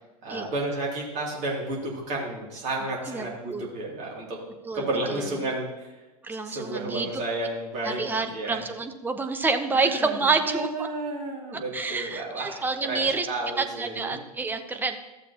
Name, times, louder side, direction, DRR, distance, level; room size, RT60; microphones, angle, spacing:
voice 1, 0.2-4.4 4.7-5.9 6.4-8.6 9.7-14.1, right 2 dB, 35° right, -4 dB, 2.6 m, -32 dB
voice 2, 4.6-5.3 6.2-7.1 7.8-10.9 11.7-13.3 13.6-15.0, right 4 dB, 10° right, 6 dB, 0.6 m, -28 dB
14.0 x 7.1 x 2.8 m, 1.1 s
figure-of-eight pair, 95°, 20 cm